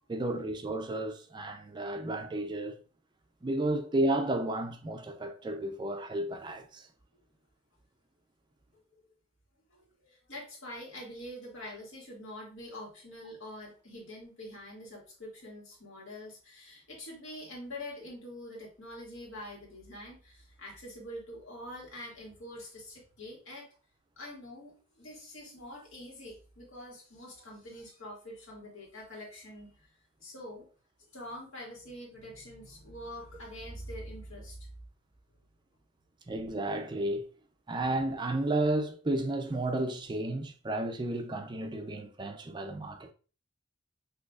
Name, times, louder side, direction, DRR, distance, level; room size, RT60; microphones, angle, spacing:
voice 1, 0.1-2.8 3.4-6.9 36.3-37.3 37.7-43.1, right 1 dB, 25° right, 0.4 m, -32 dB
voice 2, 9.7-23.7 24.2-29.9 30.2-30.7 31.1-34.6, left 1 dB, 80° left, 2.0 m, -45 dB
6.3 x 2.8 x 2.3 m
head